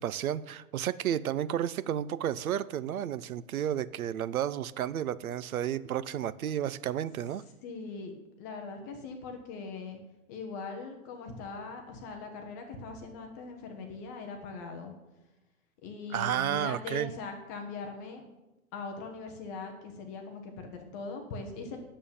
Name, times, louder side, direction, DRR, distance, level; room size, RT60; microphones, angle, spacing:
voice 1, 0.0-7.4 16.1-17.1, right 10 dB, 75° right, 18 dB, 0.7 m, -32 dB
voice 2, 7.6-8.1 8.4-10.0 10.3-14.9 15.8-18.2 18.7-21.8, left 4 dB, 15° left, 3 dB, 0.5 m, -41 dB
8.9 x 7.2 x 7.1 m, 1.0 s
hypercardioid pair, 155°, 43 cm